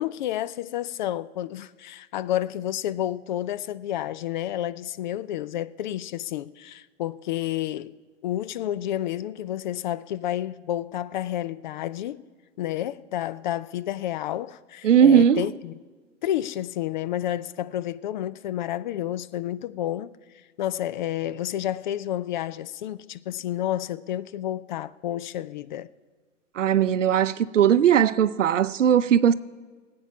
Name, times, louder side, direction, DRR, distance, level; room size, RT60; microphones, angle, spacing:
voice 1, 0.0-7.9 8.2-12.2 12.6-15.7 16.2-20.1 20.6-25.9, left 12 dB, 40° left, 0.4 m, -30 dB
voice 2, 14.8-15.5 26.6-29.3, right 9 dB, 80° right, 0.7 m, -18 dB
19.0 x 8.6 x 5.9 m
hypercardioid pair, 115°, 37 cm